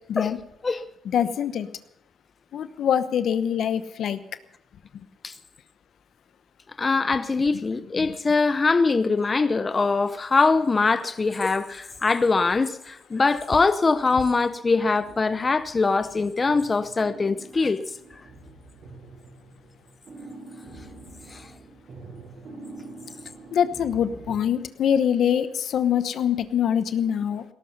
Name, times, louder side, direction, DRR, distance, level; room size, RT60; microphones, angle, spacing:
voice 1, 1.1-1.7 2.5-4.2 8.0-8.1 23.5-27.4, left 9 dB, 65° left, 1.0 m, -24 dB
voice 2, 6.8-17.8 21.3-21.5, left 4 dB, 30° left, 0.7 m, -22 dB
sound 1, 13.4-14.0 14.6-16.1 16.4-24.4, right 2 dB, 60° right, 7.1 m, -45 dB
17.5 x 13.0 x 5.5 m
cardioid pair, 90°, 0 cm